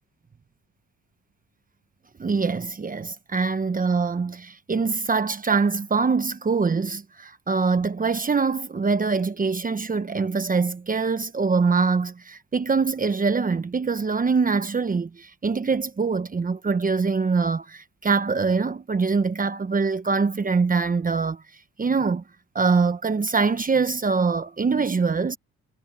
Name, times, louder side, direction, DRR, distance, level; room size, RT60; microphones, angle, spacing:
voice 1, 2.2-21.4 21.8-22.2 22.5-25.4, right 4 dB, 30° right, 1.2 m, -23 dB
cardioid pair, 90°, 30 cm